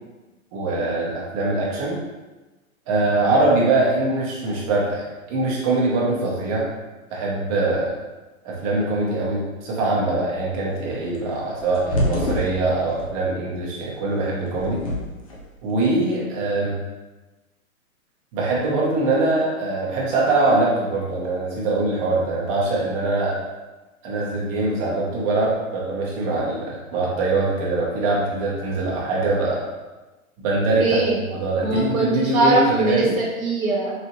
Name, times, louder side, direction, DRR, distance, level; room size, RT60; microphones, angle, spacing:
voice 1, 0.5-2.0 2.9-6.7 7.1-7.9 8.4-14.8 15.6-16.7 18.3-23.3 24.0-29.7 30.4-30.8 31.3-33.2, right 2 dB, 25° right, -4 dB, 0.8 m, -23 dB
sound 1, 11.1-13.1 14.4-15.4, left 1 dB, 25° left, 0.4 m, -26 dB
voice 2, 30.8-31.2 31.6-34.1, right 2 dB, 75° right, -3 dB, 1.0 m, -21 dB
4.1 x 2.7 x 2.7 m, 1.1 s
hypercardioid pair, 140°, 43 cm